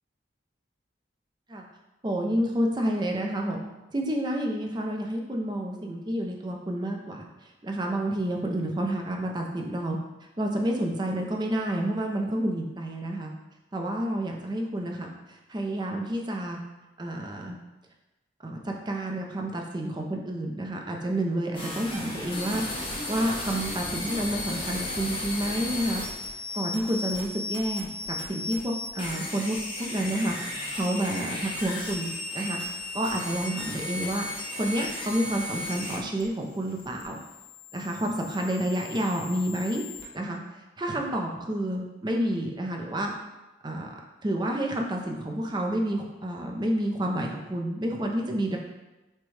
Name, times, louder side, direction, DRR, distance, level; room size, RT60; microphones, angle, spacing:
voice 1, 2.0-3.6 3.9-7.2 7.6-10.0 10.4-13.3 13.7-16.6 17.0-17.6 18.4-22.6 23.1-26.0 26.5-34.3 34.6-37.2 37.7-39.8 40.1-40.4 40.8-43.1 43.6-43.9 44.2-48.6, right 1 dB, 25° right, 1 dB, 0.5 m, -29 dB
sound 1, 21.5-40.0, left 2 dB, 30° left, 0.9 m, -35 dB
6.0 x 2.2 x 3.2 m, 1.1 s
head